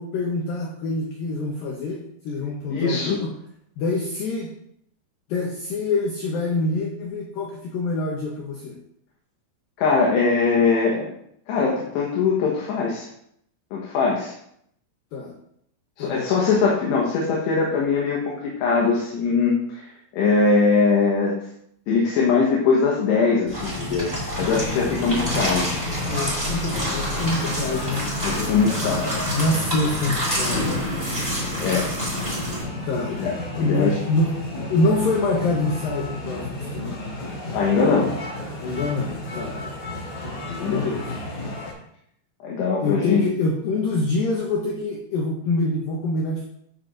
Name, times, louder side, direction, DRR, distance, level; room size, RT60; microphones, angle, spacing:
voice 1, 0.0-3.3 3.8-4.5 5.3-8.8 15.1-15.3 16.0-16.3 26.0-28.0 29.3-30.7 32.9-33.2 33.6-34.3 34.7-37.2 38.6-39.6 40.7-41.1 42.8-46.4, left 2 dB, 90° left, 0 dB, 2.0 m, -25 dB
voice 2, 2.7-3.2 9.8-11.1 11.5-13.1 13.7-14.3 16.0-19.9 20.1-21.3 21.9-24.1 24.4-25.7 28.2-29.2 31.6-31.9 33.2-34.0 37.5-38.1 40.4-40.9 42.4-43.2, left 4 dB, 70° left, -3 dB, 3.1 m, -21 dB
sound 1, 23.5-32.6, equal, 5° right, 3.0 m, -28 dB
sound 2, 24.3-41.7, left 1 dB, 55° left, 5.0 m, -33 dB
13.5 x 6.7 x 2.6 m, 0.72 s
omnidirectional pair, 5.6 m